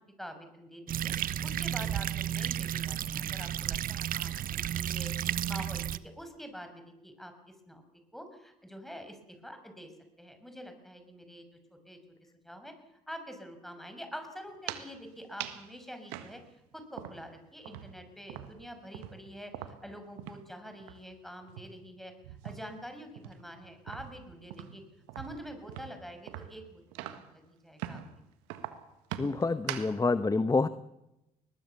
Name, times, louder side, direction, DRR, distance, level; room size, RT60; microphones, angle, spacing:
voice 1, 0.2-1.1 1.4-7.8 8.1-9.2 9.4-9.9 10.2-12.0 12.4-12.7 13.1-16.4 16.7-24.8 25.2-26.8 27.1-28.0, equal, ahead, 7 dB, 6.2 m, -46 dB
sound 1, 0.9-6.0, right 11 dB, 55° right, 0.9 m, -33 dB
sound 2, 14.5-14.9 15.4-15.7 16.1-17.4 17.6-20.5 20.8-21.0 21.4-22.8 23.2-27.4 27.8-28.1 28.5-30.0, right 12 dB, 80° right, 1.6 m, -42 dB
voice 2, 29.2-30.7, left 3 dB, 20° left, 15 dB, 1.0 m, -27 dB
22.0 x 20.0 x 7.1 m, 0.89 s
hypercardioid pair, 50°, 17 cm